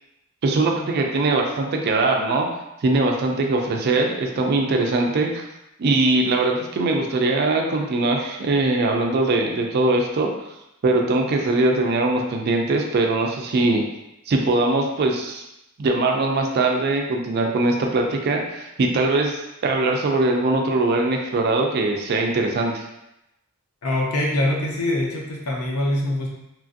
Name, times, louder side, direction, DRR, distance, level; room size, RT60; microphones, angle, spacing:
voice 1, 0.4-2.5 2.8-5.4 5.8-10.3 10.8-13.8 14.3-15.4 15.8-22.8, right 2 dB, 45° right, 2 dB, 0.3 m, -21 dB
voice 2, 23.8-26.3, left 1 dB, 70° left, -1 dB, 0.6 m, -23 dB
3.0 x 2.5 x 2.5 m, 0.89 s
head